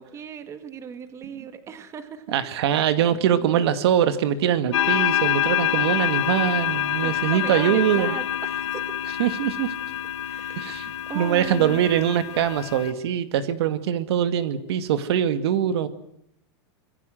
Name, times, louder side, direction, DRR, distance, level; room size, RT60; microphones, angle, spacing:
voice 1, 0.0-2.2 6.9-8.8 10.2-11.8, right 7 dB, 20° right, 9 dB, 2.1 m, -37 dB
voice 2, 2.3-8.2 9.2-9.7 10.5-15.9, right 10 dB, 65° right, 11 dB, 2.2 m, -23 dB
sound 1, 4.7-12.9, left 12 dB, 85° left, 2.0 m, -26 dB
26.0 x 22.5 x 7.9 m, 0.73 s
supercardioid pair, 160°, 15 cm